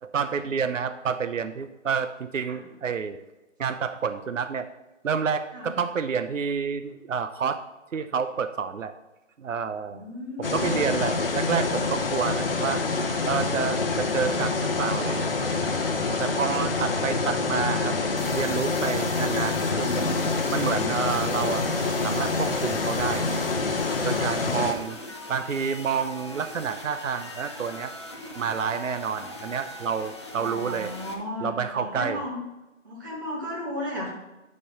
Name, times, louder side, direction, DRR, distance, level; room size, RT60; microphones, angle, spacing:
voice 1, 0.0-3.2 3.6-4.7 5.0-7.6 7.9-8.9 9.4-10.0 10.4-12.8 13.3-15.3 16.2-17.9 18.3-20.1 20.5-21.7 22.0-23.4 24.0-25.0 25.3-27.9 28.4-30.9 31.4-32.2, right 6 dB, 75° right, 10 dB, 0.7 m, -29 dB
voice 2, 9.9-10.9 19.6-20.3 30.3-32.4 32.8-34.1, left 1 dB, 15° right, -3 dB, 1.3 m, -35 dB
sound 1, 10.4-24.7, left 3 dB, 45° left, 1.1 m, -26 dB
sound 2, 18.2-31.1, left 1 dB, 20° left, 0.7 m, -41 dB
9.6 x 5.4 x 5.6 m, 1.0 s
figure-of-eight pair, 165°, 39 cm